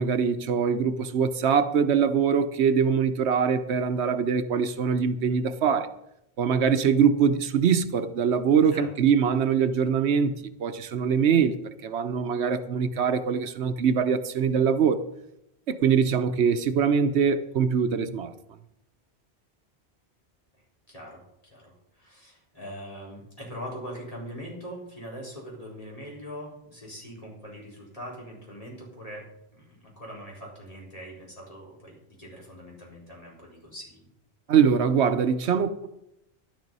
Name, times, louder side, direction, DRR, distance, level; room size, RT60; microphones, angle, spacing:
voice 1, 0.0-5.9 6.4-10.3 10.6-11.6 11.8-15.0 15.7-18.3 34.5-35.7, right 7 dB, 90° right, 1.1 m, -23 dB
voice 2, 20.9-29.2 29.5-34.0, equal, 35° left, 4.4 m, -42 dB
11.5 x 10.5 x 5.4 m
omnidirectional pair, 1.1 m